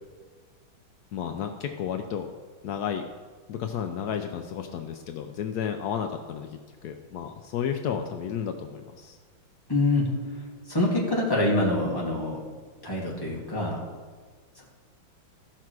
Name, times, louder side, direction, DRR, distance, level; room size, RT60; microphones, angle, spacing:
voice 1, 1.1-2.3 2.6-3.0 3.5-9.2, left 8 dB, 80° left, 6 dB, 0.8 m, -32 dB
voice 2, 9.7-10.1 10.7-12.4 12.8-13.8, left 2 dB, 10° left, -4 dB, 2.0 m, -25 dB
15.0 x 5.9 x 4.7 m, 1.5 s
omnidirectional pair, 2.3 m